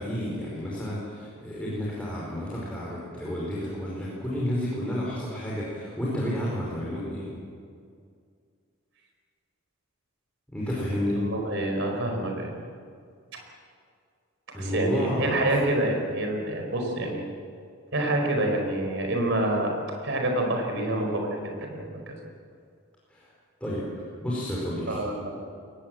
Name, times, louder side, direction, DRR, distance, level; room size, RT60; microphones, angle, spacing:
voice 1, 0.0-7.4 10.5-11.2 14.5-15.5 23.1-23.3 23.6-25.0, equal, 5° left, -6 dB, 4.9 m, -31 dB
voice 2, 11.2-12.5 14.5-17.3 17.9-19.7 20.0-22.1 24.9-25.3, right 1 dB, 60° right, 3 dB, 4.7 m, -27 dB
22.5 x 19.5 x 7.8 m, 2.2 s
head